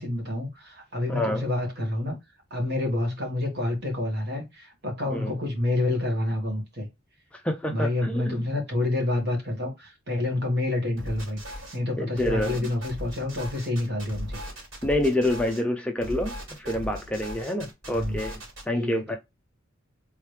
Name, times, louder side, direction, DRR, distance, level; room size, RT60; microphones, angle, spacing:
voice 1, 0.0-2.2 2.5-6.9 7.7-14.4 17.9-18.2 18.7-19.2, left 1 dB, 50° right, 1.5 m, -28 dB
voice 2, 1.1-1.5 5.1-5.3 7.3-8.4 12.0-12.7 14.8-18.4 18.7-19.2, left 1 dB, 5° left, 0.4 m, -27 dB
sound 1, 11.0-11.8 12.1-15.6 16.0-18.6, equal, 70° right, 2.7 m, -38 dB
3.6 x 3.1 x 3.2 m
head